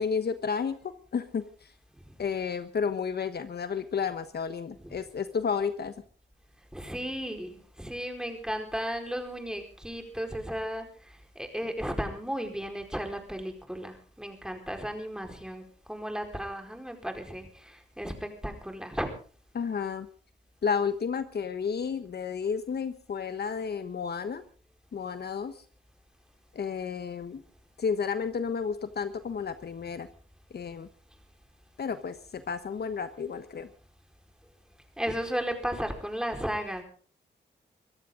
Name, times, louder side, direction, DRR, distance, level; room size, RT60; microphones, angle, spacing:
voice 1, 0.0-1.7 2.2-5.9 19.5-20.1 20.6-24.4 24.9-25.6 26.5-27.4 27.8-30.1 30.5-30.9 31.8-33.7, left 6 dB, 60° left, 11 dB, 1.2 m, -32 dB
voice 2, 6.7-19.1 35.0-36.8, equal, 5° right, 4 dB, 4.6 m, -35 dB
24.0 x 14.5 x 3.9 m, 0.42 s
cardioid pair, 75°, 19 cm